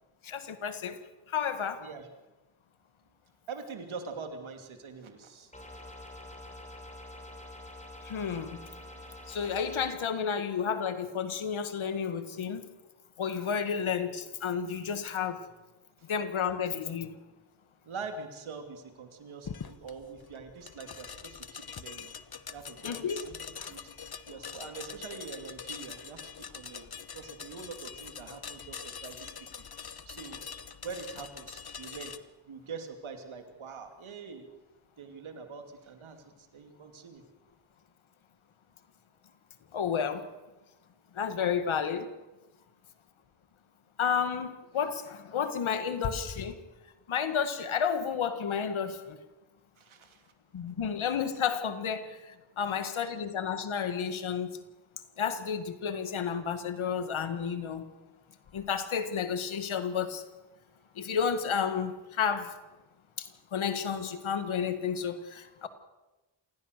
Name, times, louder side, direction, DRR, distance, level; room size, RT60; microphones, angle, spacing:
voice 1, 0.2-1.0 1.3-1.8 8.0-8.6 9.3-12.7 13.2-15.5 16.1-17.2 22.8-23.2 23.6-23.7 39.7-40.3 41.1-42.1 44.0-46.6 47.1-49.2 50.5-54.5 55.2-57.9 58.5-60.2 61.0-62.5 63.2-65.7, left 7 dB, 90° left, 10 dB, 1.8 m, -31 dB
voice 2, 3.5-5.5 16.0-16.1 17.8-22.1 22.5-29.3 29.7-30.4 30.7-32.1 32.5-34.5 35.0-37.2 49.8-50.3 52.8-52.9, right 5 dB, 85° right, 6 dB, 2.8 m, -44 dB
sound 1, 5.5-9.9, left 1 dB, 15° left, 4.7 m, -46 dB
sound 2, 19.4-32.2, left 6 dB, 50° left, 1.3 m, -44 dB
27.0 x 17.0 x 6.7 m, 1.1 s
cardioid pair, 55°, 47 cm